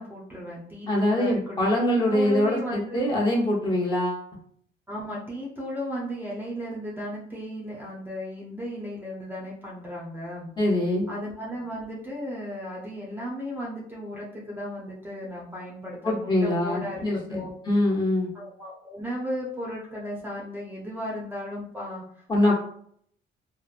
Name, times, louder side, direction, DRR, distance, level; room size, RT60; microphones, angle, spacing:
voice 1, 0.0-3.1 4.9-10.5 11.1-17.0 17.3-17.5 18.3-22.0 22.4-22.5, equal, 10° right, -4 dB, 0.7 m, -35 dB
voice 2, 0.9-4.2 10.6-11.1 16.0-18.3 22.3-22.5, left 1 dB, 20° left, -4 dB, 1.0 m, -24 dB
3.1 x 2.0 x 2.4 m, 0.64 s
cardioid pair, 90°, 20 cm